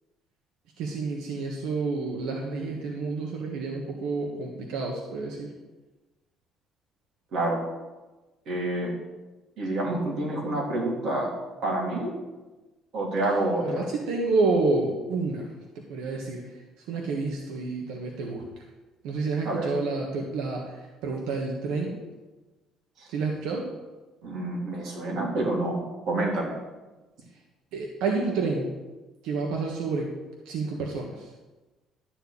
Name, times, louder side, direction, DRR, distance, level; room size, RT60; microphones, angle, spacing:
voice 1, 0.8-5.5 13.6-15.5 15.7-16.4 16.9-18.4 19.0-22.0 23.1-23.7 27.7-28.7 29.2-30.1 30.4-31.3, right 3 dB, 90° right, 0 dB, 1.5 m, -29 dB
voice 2, 7.3-7.6 8.5-8.9 9.6-11.3 11.6-12.1 12.9-13.9 19.5-19.7 23.0-23.1 24.2-26.6, right 2 dB, 55° right, -2 dB, 3.5 m, -28 dB
12.5 x 4.6 x 8.5 m, 1.2 s
cardioid pair, 145°, 0 cm